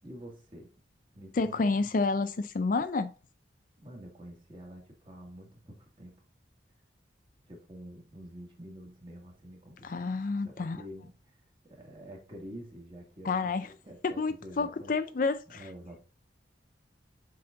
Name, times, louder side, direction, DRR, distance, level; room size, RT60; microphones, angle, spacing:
voice 1, 0.0-0.7 1.1-1.9 3.8-6.2 7.5-10.1 10.4-14.9 15.5-16.0, equal, 30° right, 2.0 m, -48 dB
voice 2, 1.4-3.1 9.8-10.8 13.2-13.7 14.0-15.6, left 3 dB, 50° left, 0.4 m, -29 dB
7.6 x 4.2 x 3.8 m
head